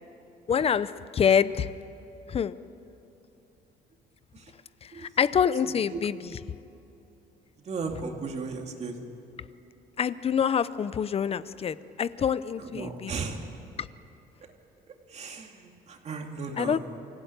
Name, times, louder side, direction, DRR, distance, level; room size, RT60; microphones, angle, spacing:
voice 1, 0.5-1.7 2.3-2.6 4.8-6.4 10.0-13.3 16.5-16.8, left 7 dB, 35° left, 16 dB, 0.7 m, -26 dB
voice 2, 7.7-8.9 12.7-13.4 15.1-16.8, right 4 dB, 40° right, 2 dB, 2.6 m, -35 dB
25.0 x 16.0 x 9.4 m, 2.9 s
cardioid pair, 125°, 18 cm